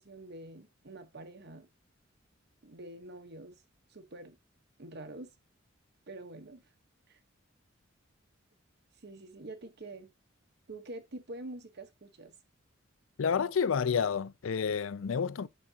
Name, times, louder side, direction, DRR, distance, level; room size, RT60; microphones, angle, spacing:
voice 1, 0.0-1.7 2.6-3.6 3.9-4.4 4.8-5.3 6.1-6.6 7.1-7.2 9.0-10.1 10.7-12.3, right 2 dB, 55° right, 1.1 m, -46 dB
voice 2, 13.2-15.5, left 6 dB, 80° left, 0.5 m, -29 dB
9.6 x 5.7 x 2.8 m
head